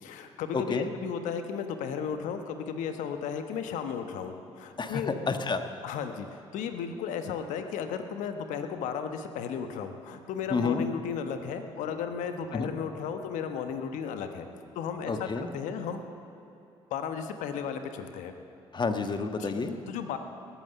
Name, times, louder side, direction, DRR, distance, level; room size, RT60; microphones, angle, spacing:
voice 1, 0.0-5.1 5.8-14.5 14.7-16.0 16.9-18.3 19.4-19.5 19.9-20.2, left 7 dB, 70° left, 7 dB, 1.2 m, -34 dB
voice 2, 0.5-0.9 4.8-5.6 10.5-10.9 12.5-12.7 15.1-15.5 18.7-19.8, left 4 dB, 35° left, 7 dB, 1.4 m, -29 dB
20.0 x 9.3 x 6.8 m, 2.9 s
hypercardioid pair, 55°, 13 cm